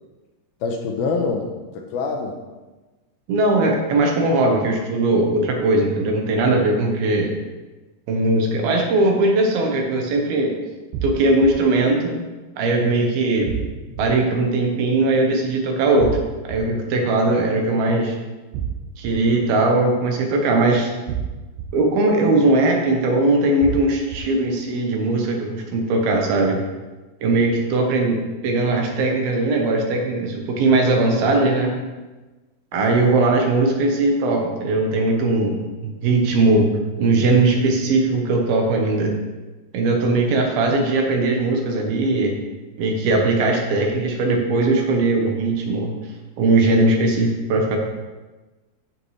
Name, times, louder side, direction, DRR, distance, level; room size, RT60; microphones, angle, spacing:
voice 1, 0.6-2.3 13.9-14.0 32.7-32.9, left 4 dB, 75° left, 3 dB, 2.6 m, -26 dB
voice 2, 3.3-7.3 8.1-10.6 11.0-12.2 12.6-13.5 14.0-16.1 16.5-18.1 19.0-20.9 21.7-26.6 27.2-31.7 32.7-36.7 37.0-39.1 39.7-42.4 42.8-45.9 46.4-47.8, right 2 dB, 75° right, 1 dB, 3.0 m, -19 dB
sound 1, 10.9-11.5 13.5-14.0 16.0-16.6 18.5-19.1 21.1-21.7 23.6-24.2, right 9 dB, 90° right, 2.8 m, -27 dB
14.0 x 5.8 x 3.3 m, 1.2 s
omnidirectional pair, 4.6 m